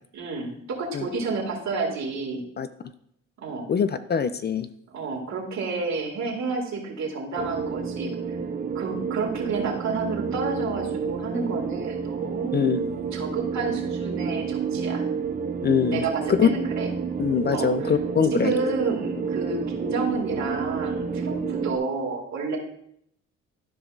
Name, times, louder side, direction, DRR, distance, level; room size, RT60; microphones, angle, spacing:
voice 1, 0.1-2.5 3.4-3.7 4.9-8.1 8.7-15.0 15.9-16.9 17.5-17.9 18.3-22.6, right 4 dB, 65° right, -1 dB, 2.3 m, -30 dB
voice 2, 3.7-4.7 12.5-12.8 15.6-16.1 16.4-16.5 17.2-18.5, left 7 dB, 35° left, 12 dB, 0.4 m, -23 dB
sound 1, 7.4-21.8, right 6 dB, 30° right, 0.6 m, -29 dB
13.0 x 5.0 x 2.6 m, 0.70 s
cardioid pair, 90°, 30 cm